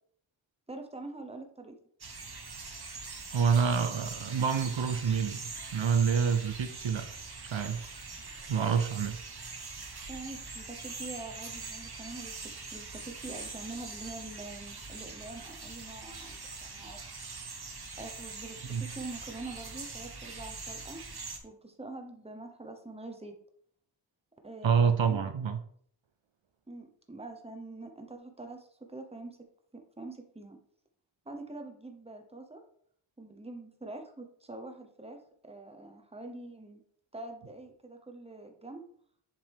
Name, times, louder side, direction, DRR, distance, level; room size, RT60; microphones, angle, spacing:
voice 1, 0.7-1.8 10.1-17.0 18.0-21.0 21.4-23.3 24.4-25.3 26.7-29.4 29.7-30.6 31.2-32.6 33.2-36.8 37.1-38.8, right 2 dB, 15° right, 5 dB, 1.0 m, -45 dB
sound 1, 2.0-21.4, right 4 dB, 50° right, 1.1 m, -43 dB
voice 2, 3.3-7.1 7.4-7.8 8.5-9.2 18.7-18.8 24.6-25.6, right 6 dB, 70° right, 9 dB, 0.6 m, -27 dB
7.4 x 5.1 x 3.6 m, 0.62 s
wide cardioid pair, 75°, 48 cm